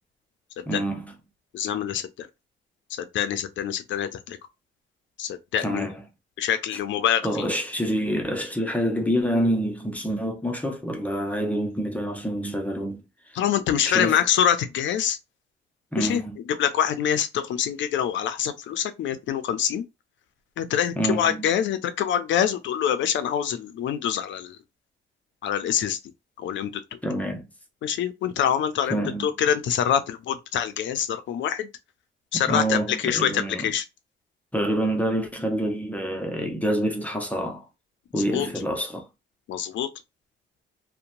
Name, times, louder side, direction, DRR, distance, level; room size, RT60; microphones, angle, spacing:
voice 1, 0.7-1.1 5.6-6.0 7.2-13.0 13.8-14.2 15.9-16.4 21.0-21.5 27.0-27.5 28.9-29.3 32.3-33.7 34.5-37.6 38.1-39.1, equal, 5° left, 0.7 m, -27 dB
voice 2, 1.5-2.3 3.0-4.4 5.2-5.9 6.4-7.5 13.3-15.2 16.0-16.2 16.5-19.8 20.6-24.6 25.4-26.0 26.4-26.8 27.8-31.7 32.3-33.8 38.1-38.5 39.5-39.9, left 9 dB, 70° left, 0.5 m, -25 dB
2.8 x 2.2 x 2.6 m
cardioid pair, 90°, 20 cm